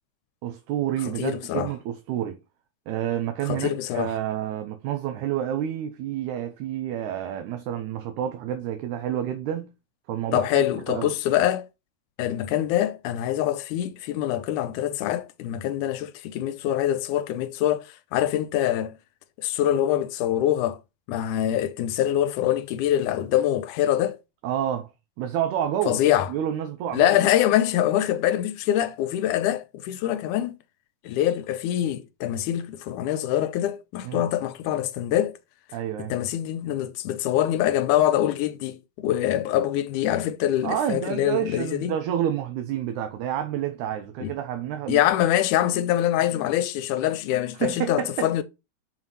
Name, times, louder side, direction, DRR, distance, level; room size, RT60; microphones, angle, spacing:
voice 1, 0.4-2.4 2.9-9.7 10.1-11.1 24.4-24.9 25.2-26.0 26.3-27.2 34.0-34.3 35.7-36.1 40.6-45.0 47.5-48.3, right 10 dB, 75° right, 2.0 m, -29 dB
voice 2, 1.1-1.7 3.5-4.1 10.3-11.7 12.2-19.0 19.4-20.8 21.1-24.2 25.9-26.3 26.9-30.6 31.0-35.4 36.0-41.9 44.2-44.3 44.9-48.4, left 12 dB, 80° left, 2.1 m, -24 dB
5.7 x 5.0 x 5.3 m
omnidirectional pair, 3.7 m